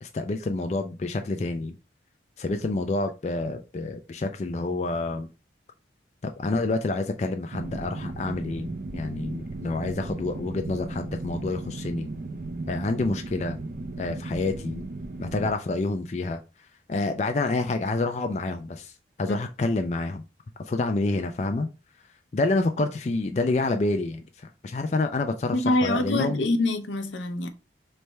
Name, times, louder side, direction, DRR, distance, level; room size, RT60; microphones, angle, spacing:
voice 1, 0.0-1.8 2.4-5.3 6.2-12.1 12.7-13.6 14.0-14.9 15.2-16.4 16.9-18.9 19.2-20.2 20.6-21.7 22.3-26.5, left 2 dB, 35° left, 0.4 m, -28 dB
sound 1, 7.5-15.5, right 2 dB, 45° right, 0.5 m, -36 dB
voice 2, 25.5-27.5, left 2 dB, 80° left, 0.7 m, -25 dB
3.3 x 3.3 x 4.2 m
head